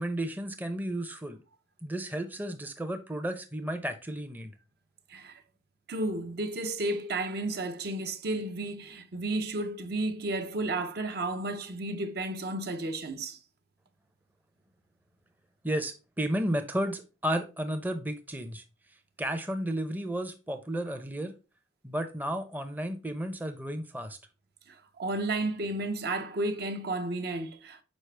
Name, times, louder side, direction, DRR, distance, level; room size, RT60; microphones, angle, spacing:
voice 1, 0.0-1.4 1.8-4.5 15.6-18.6 19.2-21.3 21.8-24.2, right 1 dB, 10° right, 0.6 m, -33 dB
voice 2, 5.1-5.4 5.9-13.4 24.7-27.8, right 2 dB, 50° right, 0.7 m, -32 dB
6.2 x 4.9 x 3.3 m
head